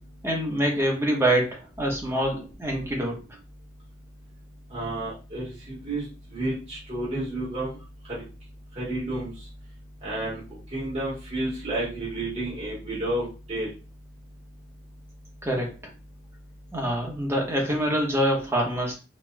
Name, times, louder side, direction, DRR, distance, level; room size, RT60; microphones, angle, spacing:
voice 1, 0.2-3.2 15.4-15.7 16.7-18.9, right 1 dB, 15° right, -1 dB, 0.9 m, -25 dB
voice 2, 4.7-6.0 6.3-7.7 8.1-8.2 8.7-9.3 10.0-10.4 10.7-13.7, right 1 dB, 35° right, -8 dB, 1.2 m, -30 dB
4.1 x 2.2 x 2.3 m, 0.33 s
head